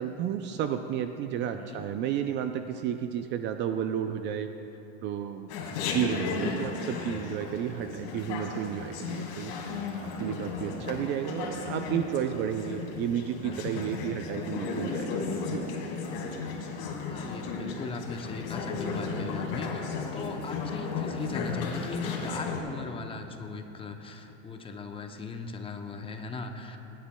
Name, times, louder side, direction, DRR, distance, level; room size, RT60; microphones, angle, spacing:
voice 1, 0.0-4.5 5.0-5.5 5.9-9.5 10.2-15.6, right 9 dB, 35° right, 8 dB, 0.4 m, -32 dB
voice 2, 1.5-1.9 6.2-6.6 10.8-11.3 17.0-19.8 20.1-26.8, left 4 dB, 15° left, 5 dB, 0.6 m, -38 dB
Chatter, 5.5-22.6, left 4 dB, 65° left, 2.1 m, -34 dB
22.0 x 10.0 x 2.2 m, 3.0 s
supercardioid pair, 135°, 33 cm